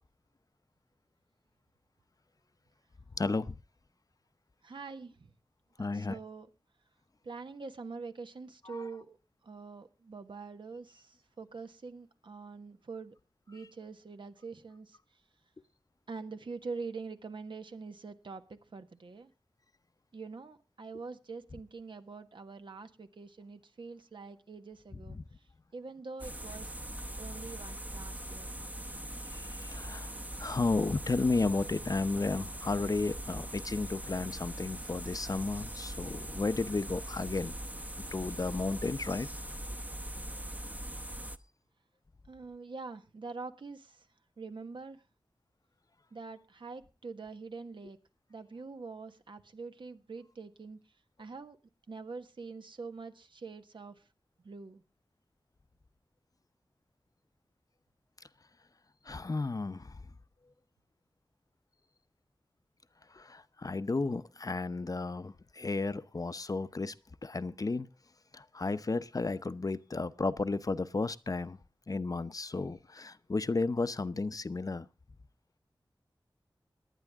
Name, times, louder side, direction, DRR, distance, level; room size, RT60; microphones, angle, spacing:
voice 1, 3.2-3.6 5.8-6.2 8.6-8.9 25.1-25.2 29.3-30.1 30.4-37.5 38.1-39.3 59.1-60.0 63.1-66.9 67.2-67.9 68.3-71.6 71.9-74.9, left 3 dB, 45° left, 0.8 m, -33 dB
voice 2, 4.6-5.3 5.8-6.5 7.2-9.2 9.4-13.1 13.5-15.0 16.1-19.3 20.1-25.2 25.7-26.8 27.2-28.5 42.3-44.1 44.4-45.0 46.1-48.0 48.3-50.8 51.2-51.6 51.9-54.0 54.4-54.8, right 4 dB, 75° right, 1.5 m, -44 dB
sound 1, 26.2-41.4, right 1 dB, 20° right, 0.9 m, -41 dB
18.5 x 11.0 x 3.6 m
wide cardioid pair, 75°, 8 cm